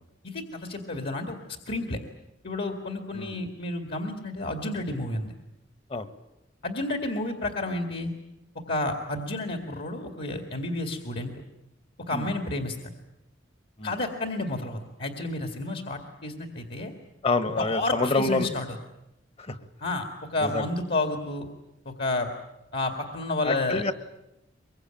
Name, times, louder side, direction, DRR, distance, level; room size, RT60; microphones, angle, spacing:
voice 1, 0.2-1.4 1.7-2.0 2.4-5.3 6.6-8.1 8.7-11.3 12.1-12.8 13.8-16.9 17.6-18.7 19.8-21.5 21.9-22.3 22.7-23.8, left 2 dB, 60° left, 5 dB, 2.2 m, -30 dB
voice 2, 17.2-18.5 19.4-19.6 20.4-20.7 23.4-23.9, left 3 dB, 35° left, 11 dB, 1.4 m, -27 dB
23.5 x 22.5 x 9.0 m, 0.92 s
head